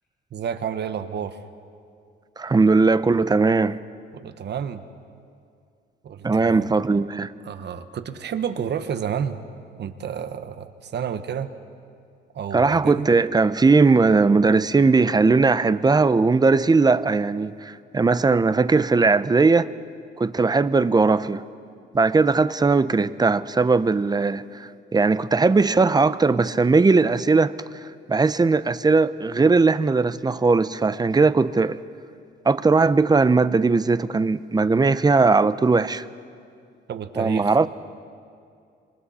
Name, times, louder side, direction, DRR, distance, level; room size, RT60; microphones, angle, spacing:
voice 1, 0.3-1.4 4.1-4.8 6.0-6.7 7.4-9.4 9.8-11.5 12.3-13.1 36.9-37.6, right 8 dB, 60° right, 1.2 m, -30 dB
voice 2, 2.4-3.8 6.2-7.3 12.5-19.7 20.2-21.4 21.9-27.5 28.1-31.8 32.5-36.0 37.2-37.7, right 4 dB, 20° right, 0.7 m, -19 dB
26.0 x 26.0 x 4.3 m
cardioid pair, 90°, 20 cm